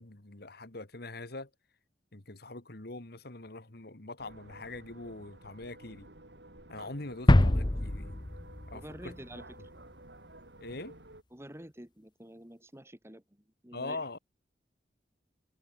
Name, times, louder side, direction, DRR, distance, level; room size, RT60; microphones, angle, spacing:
voice 1, 0.0-1.5 2.1-6.1 6.7-8.2 8.7-9.4 10.6-11.0 13.7-14.2, left 2 dB, 60° left, 2.1 m, -43 dB
sound 1, 4.2-11.2, right 2 dB, 70° right, 5.7 m, -53 dB
sound 2, 7.3-9.1 9.4-9.5, left 1 dB, 25° left, 0.9 m, -25 dB
voice 2, 8.7-9.7 11.3-14.2, right 1 dB, 15° right, 3.2 m, -49 dB
head